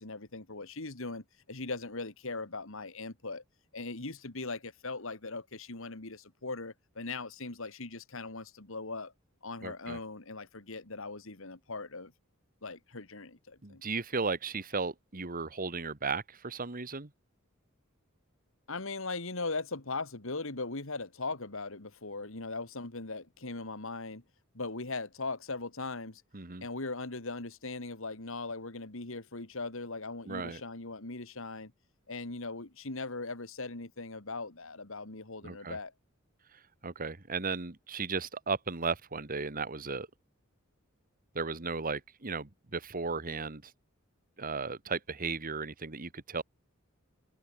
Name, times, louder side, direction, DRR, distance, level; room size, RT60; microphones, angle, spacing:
voice 1, 0.0-3.4 3.7-9.1 9.4-12.1 12.6-13.8 18.7-24.2 24.5-26.2 26.6-31.7 32.1-35.9, left 3 dB, 70° left, 2.4 m, -39 dB
voice 2, 9.6-10.0 13.6-17.1 26.3-26.7 30.2-30.6 35.4-35.8 36.8-40.1 41.3-43.7 44.4-46.4, right 4 dB, 40° right, 1.7 m, -35 dB
head